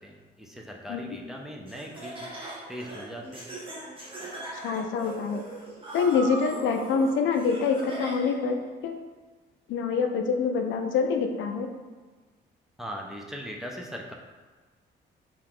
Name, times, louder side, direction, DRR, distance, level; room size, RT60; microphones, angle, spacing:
voice 1, 0.0-2.3 2.7-3.5 12.8-14.1, equal, ahead, 0 dB, 0.4 m, -39 dB
Laughter, 1.7-8.5, right 2 dB, 25° right, 0.9 m, -40 dB
voice 2, 4.5-5.4 5.9-8.6 8.8-9.0 9.7-11.7, left 5 dB, 75° left, 4 dB, 0.4 m, -26 dB
2.7 x 2.4 x 3.6 m, 1.4 s
cardioid pair, 90°, 20 cm